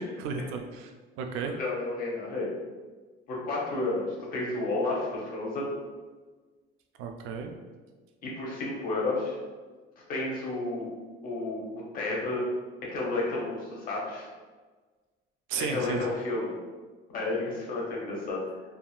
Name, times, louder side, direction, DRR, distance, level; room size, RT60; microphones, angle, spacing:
voice 1, 0.2-1.6 7.0-7.5 15.5-16.1, right 5 dB, 90° right, 5 dB, 0.4 m, -34 dB
voice 2, 1.4-2.5 3.3-5.7 8.2-9.4 10.1-10.9 11.2-12.5 12.9-14.3 15.6-16.6 17.1-18.4, left 2 dB, 45° left, -4 dB, 0.8 m, -31 dB
3.5 x 2.4 x 2.3 m, 1.4 s
cardioid pair, 170°, 21 cm